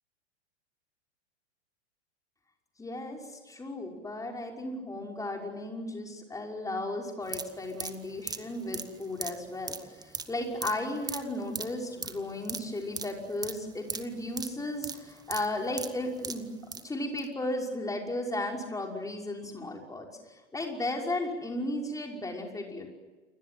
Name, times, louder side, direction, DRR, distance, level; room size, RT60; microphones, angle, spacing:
voice 1, 2.8-16.5 16.8-22.9, left 1 dB, 10° left, 1 dB, 5.8 m, -35 dB
sound 1, 7.2-16.9 17.2-17.3, right 4 dB, 10° right, 1.7 m, -39 dB
29.0 x 24.0 x 7.8 m, 1.2 s
figure-of-eight pair, 95°, 35 cm